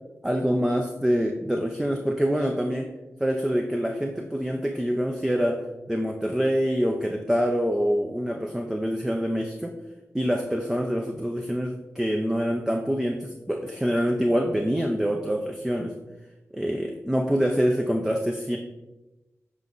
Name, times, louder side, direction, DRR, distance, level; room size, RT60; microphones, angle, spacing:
voice 1, 0.2-2.9 3.2-9.8 10.1-16.0 16.5-18.6, equal, 10° right, 3 dB, 0.6 m, -25 dB
7.4 x 4.8 x 3.9 m, 1.0 s
wide cardioid pair, 65°, 6 cm